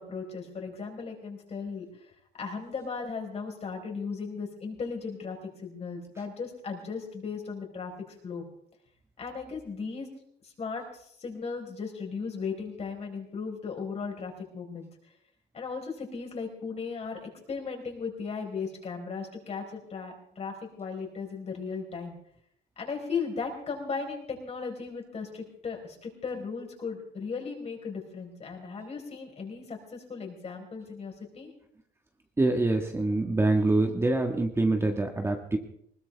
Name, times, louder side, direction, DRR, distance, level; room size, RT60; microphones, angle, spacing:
voice 1, 0.0-8.4 9.2-10.1 10.4-14.9 15.5-22.2 22.8-31.5, left 5 dB, 40° left, 2 dB, 4.8 m, -37 dB
voice 2, 32.4-35.6, right 2 dB, 15° right, 3 dB, 1.6 m, -25 dB
20.5 x 19.5 x 3.5 m, 0.69 s
cardioid pair, 110°, 17 cm